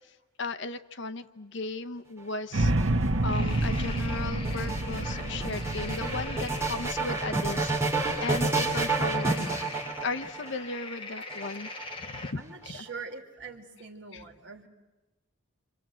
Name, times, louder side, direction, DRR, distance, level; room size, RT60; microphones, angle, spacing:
voice 1, 0.4-2.9 3.2-7.7 8.2-9.4 10.0-11.7 12.0-12.4 12.7-12.8, left 3 dB, 60° left, 9 dB, 0.8 m, -36 dB
sound 1, 2.5-10.5 11.3-12.2, right 3 dB, 15° right, 2.8 m, -30 dB
sound 2, 2.5-8.6, right 1 dB, 85° right, 1.1 m, -29 dB
sound 3, 3.3-12.3, left 3 dB, 25° left, 1.6 m, -42 dB
voice 2, 12.4-14.7, right 4 dB, 60° right, 3 dB, 2.5 m, -43 dB
29.0 x 26.0 x 7.6 m, 1.1 s
head